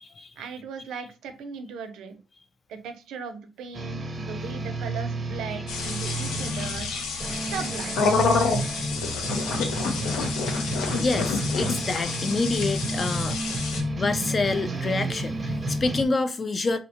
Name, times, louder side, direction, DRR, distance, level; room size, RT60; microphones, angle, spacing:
voice 1, 0.4-2.2 2.7-6.9 7.5-8.3, right 5 dB, 85° right, 0.5 m, -38 dB
sound 1, 3.7-16.1, right 1 dB, 30° right, 0.6 m, -31 dB
sound 2, 5.7-13.8, left 4 dB, 85° left, 0.5 m, -28 dB
voice 2, 11.0-13.4 14.0-16.8, left 3 dB, 35° left, 0.3 m, -27 dB
2.7 x 2.1 x 2.8 m
cardioid pair, 90°, 0 cm